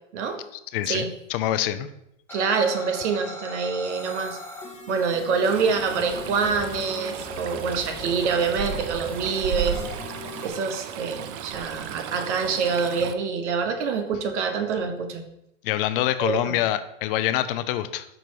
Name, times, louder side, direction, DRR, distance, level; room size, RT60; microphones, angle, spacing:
voice 1, 0.7-1.0 1.3-1.9 15.6-18.1, left 12 dB, 45° left, 12 dB, 0.5 m, -25 dB
sound 1, 2.3-10.5, left 1 dB, 5° left, 1.5 m, -39 dB
voice 2, 2.3-4.4 4.9-9.8 10.4-15.2 16.2-16.6, right 5 dB, 65° right, 6 dB, 1.3 m, -26 dB
Stream, 5.4-13.1, right 9 dB, 35° right, 0.4 m, -35 dB
5.9 x 5.4 x 4.6 m, 0.82 s
hypercardioid pair, 130°, 37 cm